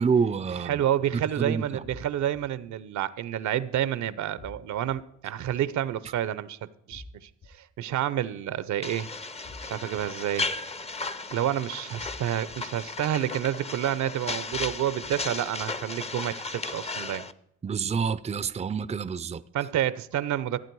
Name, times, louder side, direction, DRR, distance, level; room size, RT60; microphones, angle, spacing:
voice 1, 0.0-0.8 1.1-1.8 17.6-19.4, right 6 dB, 20° right, 0.5 m, -27 dB
voice 2, 0.6-9.1 9.6-10.5 11.3-17.3 19.5-20.6, right 11 dB, 70° right, 0.7 m, -29 dB
sound 1, 1.8-2.4 4.4-5.0 6.9-7.5 9.4-10.0 12.0-12.6 14.5-15.1, left 2 dB, 55° left, 3.1 m, -46 dB
sound 2, 8.8-17.3, left 3 dB, 20° left, 0.7 m, -35 dB
14.5 x 8.9 x 4.6 m
cardioid pair, 90°, 30 cm